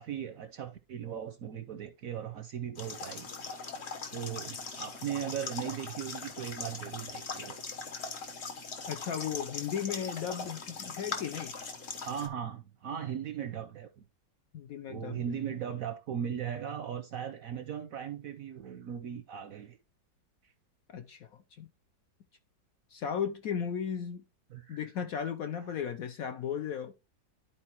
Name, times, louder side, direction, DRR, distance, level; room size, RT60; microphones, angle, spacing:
voice 1, 0.0-3.3 4.1-7.6 12.0-14.0 14.9-19.8 20.4-20.5 24.5-24.9 25.6-25.7, right 9 dB, 65° right, 0.8 m, -38 dB
sound 1, 2.8-12.3, left 4 dB, 40° left, 1.1 m, -40 dB
voice 2, 8.9-11.5 14.5-15.2 20.9-21.3 21.6-21.7 22.9-24.2 24.7-26.9, left 8 dB, 70° left, 0.8 m, -35 dB
12.0 x 4.4 x 2.9 m
omnidirectional pair, 2.0 m